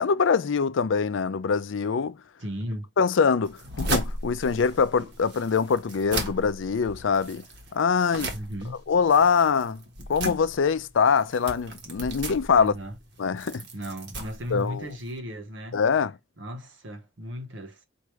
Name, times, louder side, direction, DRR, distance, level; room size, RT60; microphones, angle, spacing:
voice 1, 0.0-2.2 3.0-7.4 7.7-8.3 8.9-9.8 10.1-12.7 13.2-13.6 14.5-14.9 15.7-16.1, left 6 dB, 75° left, 0.4 m, -23 dB
voice 2, 2.4-2.9 8.3-8.8 12.5-13.0 13.7-15.8 16.4-17.8, equal, 75° right, 1.1 m, -36 dB
sound 1, 3.4-15.2, right 1 dB, 60° right, 1.2 m, -36 dB
4.7 x 2.6 x 3.1 m
head